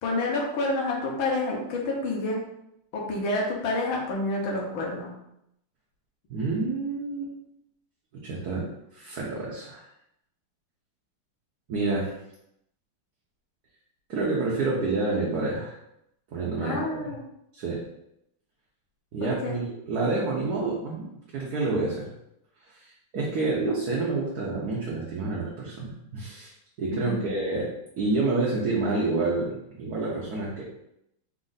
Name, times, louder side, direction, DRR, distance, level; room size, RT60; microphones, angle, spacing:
voice 1, 0.0-2.4 2.9-5.1 16.6-17.2 19.2-19.5 26.9-27.2, left 2 dB, 75° left, -1 dB, 1.7 m, -28 dB
voice 2, 6.3-7.3 8.2-8.7 8.9-9.8 11.7-12.1 14.1-15.8 16.3-17.1 17.5-17.8 19.1-21.1 21.3-22.1 22.7-26.5 26.8-27.7 28.0-30.6, right 3 dB, 60° right, -4 dB, 1.0 m, -28 dB
4.2 x 2.5 x 3.9 m, 0.79 s
omnidirectional pair, 2.3 m